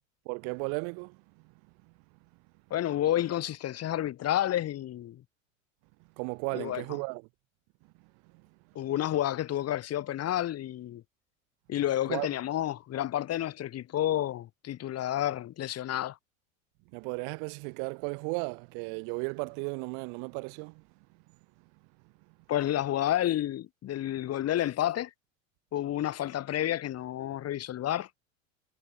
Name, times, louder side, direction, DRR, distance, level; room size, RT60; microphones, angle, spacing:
voice 1, 0.3-1.4 1.8-1.9 6.2-7.2 8.2-8.3 12.1-12.3 16.9-20.8, right 40 dB or more, 50° right, 3.8 m, -35 dB
voice 2, 2.7-5.2 6.5-6.8 8.7-11.0 11.7-16.2 22.5-25.1 25.7-28.1, left 12 dB, 40° left, 5.9 m, -30 dB
figure-of-eight pair, 75°, 40 cm